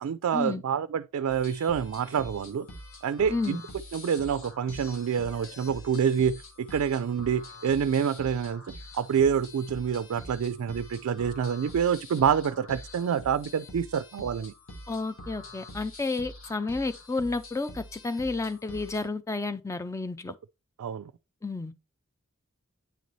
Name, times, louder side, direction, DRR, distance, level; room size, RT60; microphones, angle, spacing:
voice 1, 0.0-2.7 3.0-3.6 3.9-8.6 8.9-14.5 20.8-21.1, right 7 dB, 85° right, 0.3 m, -27 dB
sound 1, 1.3-19.1, left 1 dB, 65° left, 1.3 m, -45 dB
voice 2, 3.3-3.6 14.9-20.3 21.4-21.7, left 3 dB, 15° left, 0.4 m, -31 dB
9.2 x 4.0 x 3.1 m
head